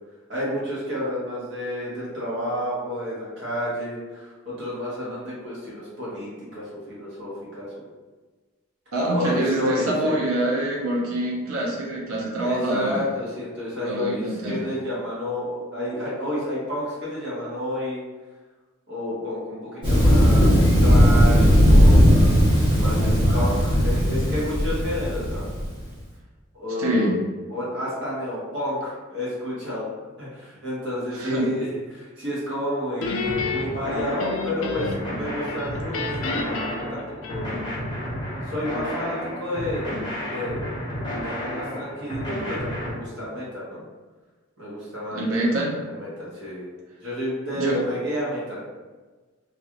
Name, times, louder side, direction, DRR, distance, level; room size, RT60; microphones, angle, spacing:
voice 1, 0.3-7.8 9.1-10.2 12.4-18.0 18.9-22.2 22.8-25.4 26.5-27.1 27.5-29.9 30.2-37.5 38.4-40.0 40.3-40.7 41.2-43.8 44.6-45.5 45.8-46.7 47.0-48.6, left 1 dB, 55° right, -8 dB, 1.4 m, -30 dB
voice 2, 8.9-13.0 13.8-14.7 26.8-27.2 31.1-31.5 45.1-45.7 47.6-47.8, right 1 dB, 90° right, -3 dB, 0.8 m, -25 dB
Thunder, 19.8-25.7, equal, 25° right, 1.1 m, -17 dB
Guitar, 33.0-35.2 35.5-37.8, left 4 dB, 75° left, 0.4 m, -31 dB
sound 1, 33.2-42.9, equal, 20° left, 0.6 m, -32 dB
3.0 x 2.5 x 3.0 m, 1.3 s
head